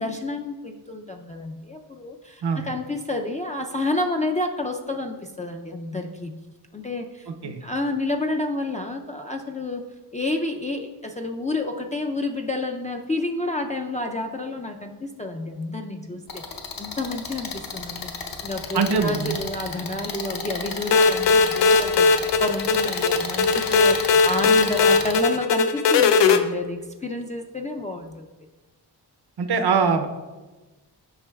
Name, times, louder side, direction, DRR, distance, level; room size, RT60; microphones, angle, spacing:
voice 1, 0.0-6.4 6.7-9.8 10.1-16.4 16.8-18.1 18.4-28.3, left 2 dB, 20° left, 1 dB, 0.4 m, -30 dB
sound 1, 16.3-25.2, left 4 dB, 55° left, 0.8 m, -32 dB
voice 2, 18.7-19.4 29.4-30.1, right 5 dB, 65° right, 7 dB, 0.7 m, -22 dB
sound 2, 20.9-26.4, left 4 dB, 90° left, 0.5 m, -19 dB
8.9 x 5.2 x 2.3 m, 1.2 s
cardioid pair, 65°, 42 cm